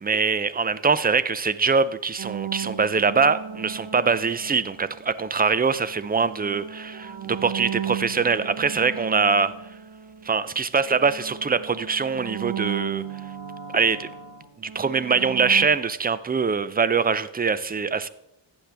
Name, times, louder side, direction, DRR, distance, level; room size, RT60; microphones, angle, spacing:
voice 1, 0.0-9.5 10.2-13.0 13.7-14.1 14.6-18.1, right 5 dB, 20° right, 0.4 m, -23 dB
sound 1, 2.2-5.1 5.8-10.6 10.8-15.7, right 9 dB, 65° right, 1.2 m, -35 dB
14.5 x 8.0 x 3.4 m
wide cardioid pair, 95°, 49 cm